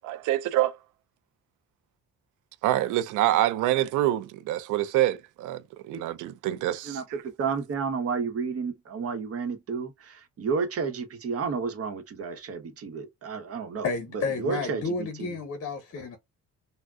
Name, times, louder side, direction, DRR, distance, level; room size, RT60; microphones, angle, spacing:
voice 1, 0.0-0.8 2.6-5.6 5.9-7.0, right 14 dB, 90° right, 0.5 m, -26 dB
voice 2, 6.8-13.9 14.1-15.3, right 5 dB, 50° right, 0.9 m, -31 dB
voice 3, 13.8-16.2, left 4 dB, 50° left, 0.7 m, -31 dB
3.5 x 2.1 x 2.2 m
cardioid pair, 90°, 30 cm